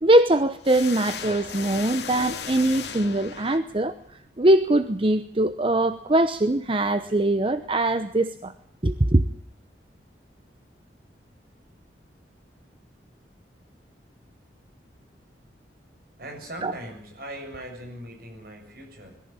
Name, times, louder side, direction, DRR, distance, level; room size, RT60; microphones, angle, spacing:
voice 1, 0.0-3.9 4.4-8.5 8.8-9.2 16.6-16.7, right 1 dB, 30° right, 10 dB, 0.9 m, -22 dB
sound 1, 0.6-4.0, left 6 dB, 75° left, 2.2 m, -36 dB
voice 2, 16.1-19.2, right 1 dB, 55° right, 3 dB, 7.4 m, -40 dB
22.0 x 15.0 x 8.8 m, 0.68 s
head